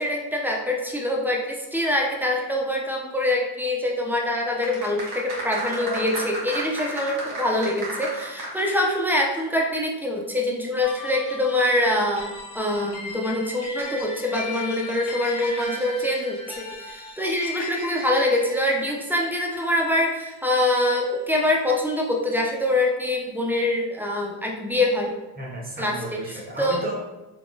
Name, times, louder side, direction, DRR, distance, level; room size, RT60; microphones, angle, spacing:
voice 1, 0.0-25.2 25.8-26.8, left 1 dB, 5° right, -1 dB, 0.5 m, -24 dB
sound 1, 4.6-9.1 9.4-9.5, right 1 dB, 50° right, 1.3 m, -32 dB
sound 2, 10.8-21.4, left 2 dB, 55° left, 1.0 m, -37 dB
voice 2, 25.3-27.0, equal, 20° right, -3 dB, 1.0 m, -33 dB
3.4 x 2.4 x 2.4 m, 1.0 s
supercardioid pair, 65°, 45 cm